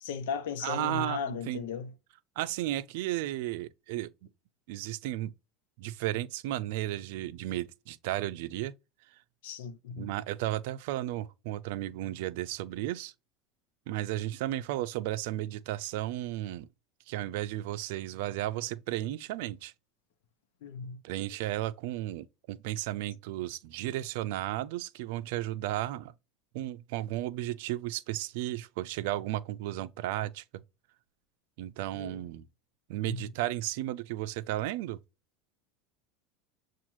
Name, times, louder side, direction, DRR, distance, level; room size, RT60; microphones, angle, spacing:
voice 1, 0.0-1.9 9.4-10.1 20.6-21.0 31.9-32.2 33.1-33.3, left 6 dB, 80° left, 0.8 m, -36 dB
voice 2, 0.6-1.7 2.4-4.1 4.7-5.3 5.8-8.7 10.0-13.1 13.9-16.7 17.1-19.7 21.0-26.1 26.5-30.6 31.6-32.4 32.9-35.0, right 15 dB, 75° right, 0.5 m, -34 dB
7.1 x 2.4 x 2.9 m
supercardioid pair, 120°, 0 cm